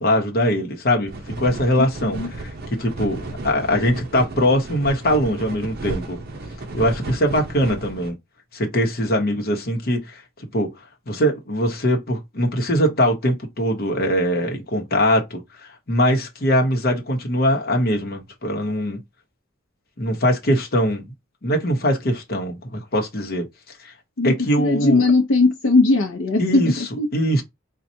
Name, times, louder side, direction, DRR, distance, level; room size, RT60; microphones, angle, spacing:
voice 1, 0.0-6.2 6.7-8.2 8.5-10.2 10.5-10.7 11.1-19.0 20.0-21.1 21.4-23.4 23.8-23.9 24.2-25.0 26.4-26.8 27.1-27.4, equal, 50° left, 1.0 m, -22 dB
sound 1, 1.1-8.1, right 2 dB, 50° right, 0.8 m, -33 dB
voice 2, 24.2-27.1, left 3 dB, 70° left, 0.7 m, -19 dB
4.3 x 2.4 x 2.7 m
head